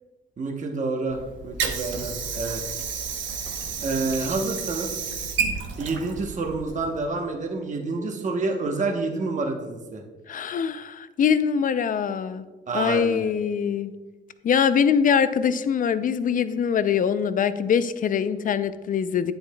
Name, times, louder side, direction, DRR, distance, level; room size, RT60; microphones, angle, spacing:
voice 1, 0.4-2.6 3.8-4.9 5.8-10.0 12.7-13.3, right 3 dB, 40° right, 2 dB, 0.9 m, -28 dB
Water / Sink (filling or washing), 1.1-7.1, right 5 dB, 75° right, 0.9 m, -31 dB
voice 2, 10.3-12.4 12.7-13.9 14.4-19.3, left 7 dB, 45° left, 13 dB, 0.4 m, -23 dB
8.8 x 7.8 x 2.2 m, 1.2 s
cardioid pair, 90°, 20 cm